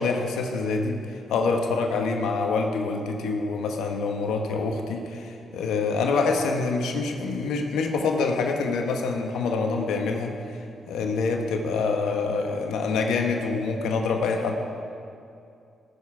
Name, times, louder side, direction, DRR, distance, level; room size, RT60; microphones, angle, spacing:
voice 1, 0.0-14.5, left 4 dB, 85° left, 3 dB, 1.1 m, -26 dB
19.0 x 6.7 x 4.9 m, 2.5 s
supercardioid pair, 65°, 0 cm